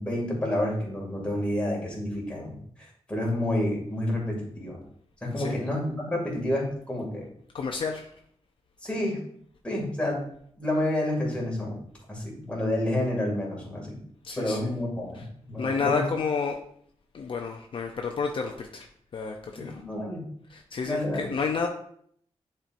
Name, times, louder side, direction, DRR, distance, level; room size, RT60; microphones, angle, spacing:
voice 1, 0.0-4.8 5.2-7.3 8.8-9.2 9.6-10.2 10.6-11.8 12.1-14.0 14.4-16.0 19.6-20.3 20.8-21.3, left 1 dB, 10° left, -3 dB, 2.3 m, -29 dB
voice 2, 7.5-8.1 14.2-14.7 15.1-15.2 15.6-16.6 17.1-18.9 19.1-19.8 20.5-21.7, left 5 dB, 50° left, 3 dB, 0.6 m, -30 dB
10.0 x 4.4 x 2.6 m, 0.65 s
wide cardioid pair, 150°, 11 cm